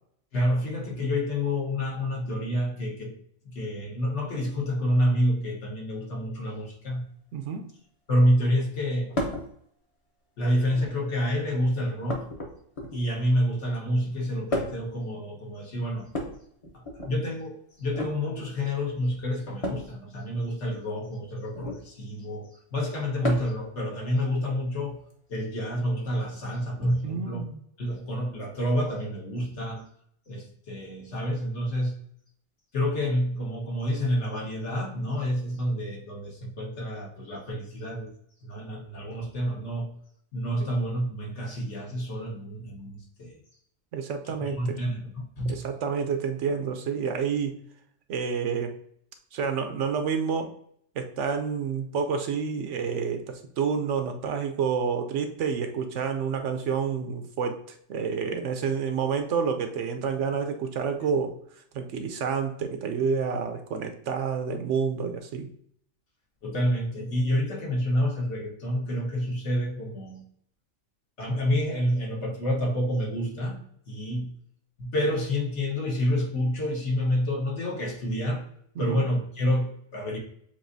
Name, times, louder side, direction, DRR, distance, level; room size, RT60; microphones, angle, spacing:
voice 1, 0.3-3.2 3.4-7.0 8.1-9.2 10.4-12.2 12.9-16.1 16.7-25.0 25.3-27.4 27.8-29.9 30.3-31.9 32.7-38.1 38.4-39.9 40.3-43.4 44.4-45.6 66.4-70.2 71.2-74.3 74.8-78.4 78.8-80.2, equal, 60° left, -1 dB, 1.5 m, -28 dB
voice 2, 7.3-7.6 27.0-27.6 43.9-44.8 45.4-47.6 48.1-48.7 49.3-50.5 51.0-57.6 57.9-61.3 61.7-65.5 78.8-79.0, right 6 dB, 70° right, 6 dB, 0.9 m, -29 dB
sound 1, 9.1-9.5 10.5-11.0 12.1-13.2 14.5-14.9 16.0-17.1 17.8-18.1 19.6-19.9 21.5-21.9 23.2-23.6 25.1-25.2 26.4-26.5, left 1 dB, 30° left, 0.9 m, -32 dB
7.1 x 2.6 x 2.6 m, 0.66 s
omnidirectional pair, 1.4 m